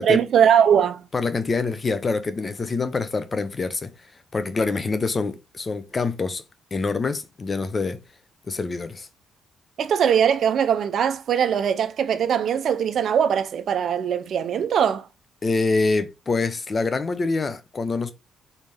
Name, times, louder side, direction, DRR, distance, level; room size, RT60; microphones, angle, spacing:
voice 1, 0.0-1.0 9.8-15.1, right 8 dB, 65° right, 0.6 m, -21 dB
voice 2, 1.1-3.9 4.3-6.4 6.7-8.0 8.5-9.1 15.4-18.1, left 3 dB, 35° left, 0.7 m, -25 dB
4.0 x 3.4 x 3.6 m
cardioid pair, 90°, 0 cm